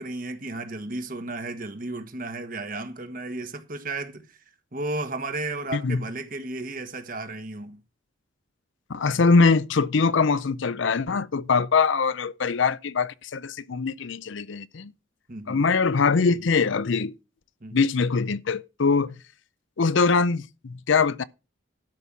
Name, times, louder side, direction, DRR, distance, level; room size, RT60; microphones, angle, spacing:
voice 1, 0.0-4.4 4.7-7.8 15.3-15.6 17.6-17.8, right 2 dB, 45° right, 1.4 m, -34 dB
voice 2, 8.9-14.9 15.5-17.1 17.7-19.1 19.8-21.2, left 4 dB, 70° left, 0.5 m, -22 dB
12.5 x 5.4 x 6.1 m
head